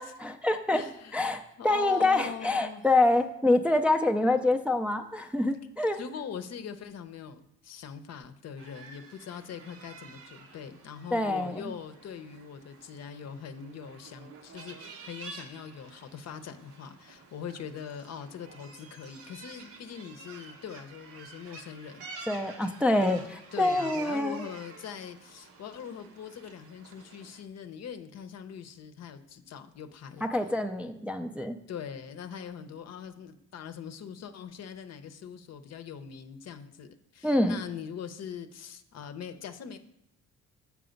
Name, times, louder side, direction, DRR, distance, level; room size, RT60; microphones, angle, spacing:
voice 1, 0.0-0.8 1.1-6.0 11.1-11.7 22.3-23.2 23.6-24.5 30.2-31.6 37.2-37.6, left 2 dB, 5° right, 5 dB, 0.4 m, -26 dB
voice 2, 0.7-1.1 1.6-2.9 6.0-22.1 22.9-23.1 23.5-30.2 31.7-39.8, left 7 dB, 60° left, 9 dB, 0.7 m, -42 dB
sound 1, 8.6-27.4, right 4 dB, 85° right, 1.0 m, -49 dB
6.8 x 4.8 x 5.1 m, 0.80 s
cardioid pair, 90°, 30 cm